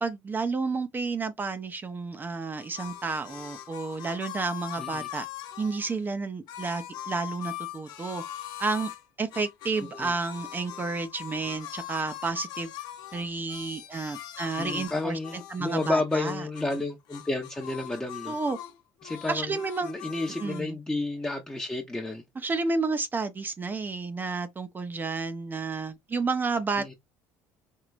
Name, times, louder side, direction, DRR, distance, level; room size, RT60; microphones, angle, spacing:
voice 1, 0.0-5.3 5.6-8.2 8.6-8.9 9.2-12.7 13.1-15.2 15.5-16.5 18.3-18.6 19.3-19.9 20.4-20.8 22.4-26.9, right 4 dB, 25° right, 0.7 m, -31 dB
sound 1, 2.5-5.9 6.5-9.0 9.3-16.8 17.1-18.7 19.0-20.6, left 13 dB, 70° left, 0.9 m, -41 dB
voice 2, 4.8-5.1 9.9-10.1 14.6-18.4 19.0-22.2 26.8-26.9, left 2 dB, 10° left, 0.9 m, -31 dB
4.5 x 2.9 x 2.5 m
supercardioid pair, 85°, 7 cm